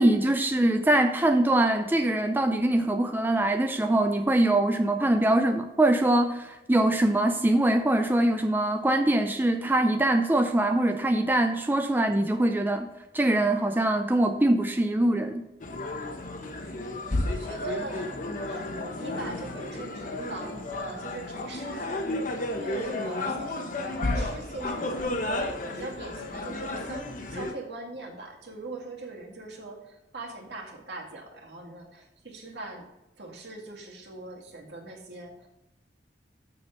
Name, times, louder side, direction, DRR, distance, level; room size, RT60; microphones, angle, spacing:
voice 1, 0.0-12.9 13.1-15.4, right 1 dB, 10° right, 5 dB, 0.4 m, -23 dB
sound 1, 15.6-27.5, left 2 dB, 50° left, 1.0 m, -32 dB
voice 2, 17.2-22.1 22.6-25.3 25.7-32.8 33.2-35.5, right 2 dB, 70° right, -1 dB, 2.0 m, -41 dB
6.9 x 6.9 x 5.7 m, 0.94 s
head